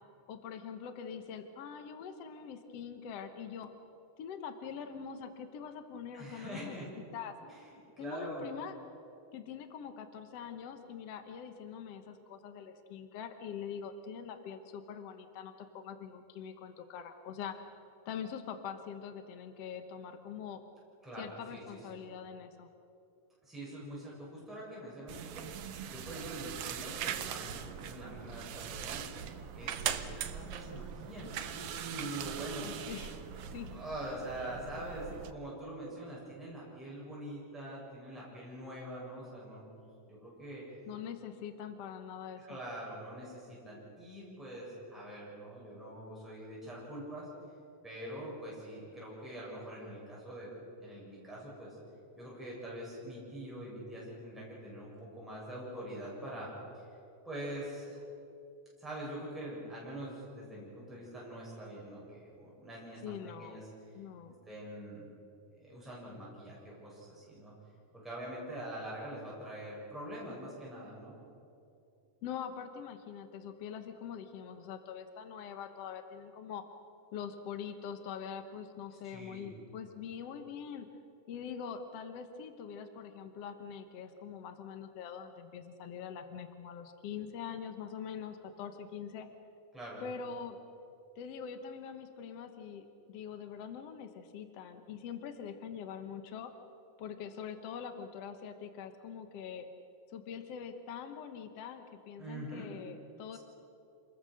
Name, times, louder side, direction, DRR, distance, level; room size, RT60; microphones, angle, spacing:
voice 1, 0.3-3.7 4.2-6.8 7.1-7.4 8.0-8.7 9.3-17.6 18.1-20.6 21.2-22.7 32.6-33.7 34.4-34.5 40.9-42.6 63.0-63.6 64.0-64.3 72.2-76.6 77.1-80.9 81.3-89.3 90.0-90.6 91.2-96.5 97.0-99.7 100.1-103.4, left 7 dB, 60° left, 8 dB, 1.9 m, -44 dB
voice 2, 6.1-6.9 7.4-8.5 21.0-22.0 23.4-32.7 33.7-39.7 40.1-40.6 42.4-47.3 47.8-50.5 50.8-51.8 52.2-56.8 57.2-58.0 58.8-63.6 64.5-65.1 65.5-67.5 67.9-71.2 79.0-79.5 89.7-90.0 102.2-102.7, right 1 dB, ahead, -6 dB, 7.4 m, -44 dB
sound 1, 25.1-35.3, right 9 dB, 65° right, 1.6 m, -41 dB
28.5 x 21.0 x 6.5 m, 2.7 s
omnidirectional pair, 3.6 m